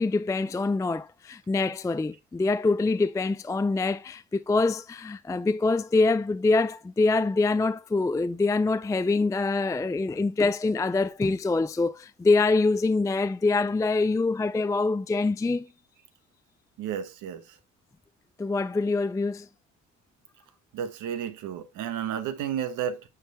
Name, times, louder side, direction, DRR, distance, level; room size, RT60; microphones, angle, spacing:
voice 1, 0.0-15.7 18.4-19.5, left 3 dB, 10° left, 0.3 m, -25 dB
voice 2, 16.8-17.4 20.7-23.0, right 9 dB, 90° right, 1.3 m, -32 dB
9.1 x 3.4 x 4.2 m
cardioid pair, 90°, 30 cm